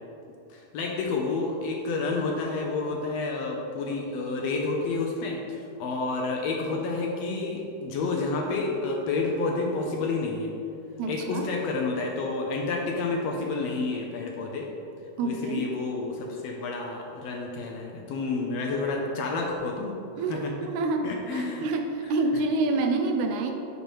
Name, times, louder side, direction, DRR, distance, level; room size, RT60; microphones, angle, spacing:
voice 1, 0.5-10.5 11.1-14.7 15.2-20.0 20.3-20.5 21.0-21.6 22.0-22.1, left 3 dB, 80° left, 0 dB, 1.6 m, -29 dB
voice 2, 11.0-11.5 15.2-15.7 20.2-23.5, right 3 dB, 85° right, 4 dB, 2.1 m, -27 dB
9.9 x 4.4 x 3.0 m, 2.7 s
omnidirectional pair, 3.3 m